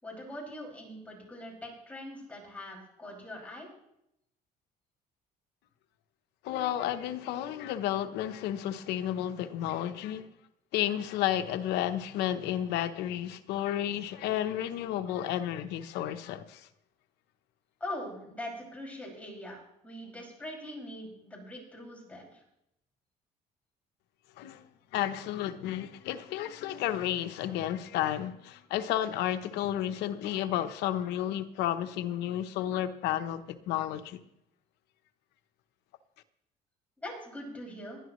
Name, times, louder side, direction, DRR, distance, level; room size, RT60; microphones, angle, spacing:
voice 1, 0.0-3.7 17.8-22.4 37.0-38.0, left 1 dB, 10° left, 5.9 m, -42 dB
voice 2, 6.4-10.3 10.7-16.7 24.4-34.2, left 11 dB, 90° left, 0.9 m, -32 dB
20.5 x 11.5 x 3.1 m
cardioid pair, 110°, 17 cm